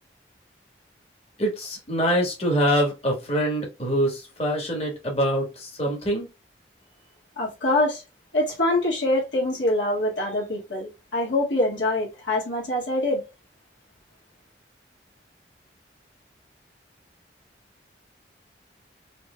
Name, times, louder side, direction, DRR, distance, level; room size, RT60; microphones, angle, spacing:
voice 1, 1.4-6.3, equal, 35° left, 1.3 m, -24 dB
voice 2, 7.4-8.0 8.3-13.2, left 1 dB, 80° left, 1.6 m, -24 dB
4.2 x 3.1 x 2.2 m
head